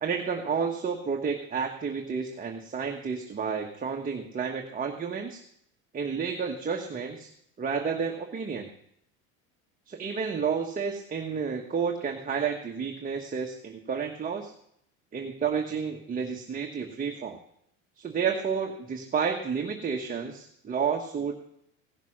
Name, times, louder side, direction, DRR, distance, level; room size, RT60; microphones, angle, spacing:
voice 1, 0.0-5.4 5.9-7.3 7.6-8.7 9.9-14.5 15.1-17.4 18.0-21.3, right 6 dB, 20° right, 1 dB, 1.3 m, -31 dB
16.5 x 6.7 x 6.4 m, 0.71 s
supercardioid pair, 120°, 37 cm